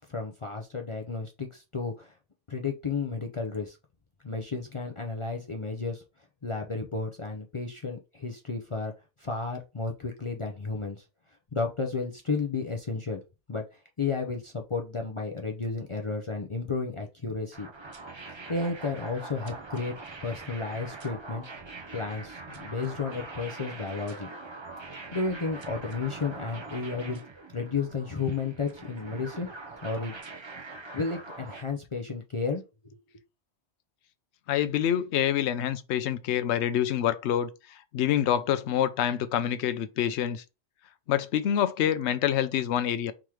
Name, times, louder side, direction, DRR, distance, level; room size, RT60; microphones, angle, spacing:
voice 1, 0.1-2.1 2.5-3.8 4.2-6.0 6.4-8.9 9.2-11.0 11.5-13.2 13.5-17.7 18.5-19.9 20.2-21.4 21.9-24.3 25.1-27.2 27.5-29.5 29.8-30.1 30.9-32.6 32.9-33.0, left 4 dB, 35° left, 0.6 m, -32 dB
sound 1, 17.5-31.6, right 3 dB, 30° right, 0.6 m, -43 dB
voice 2, 34.5-40.4 41.1-43.1, left 10 dB, 75° left, 0.9 m, -26 dB
3.7 x 3.0 x 4.8 m
omnidirectional pair, 1.2 m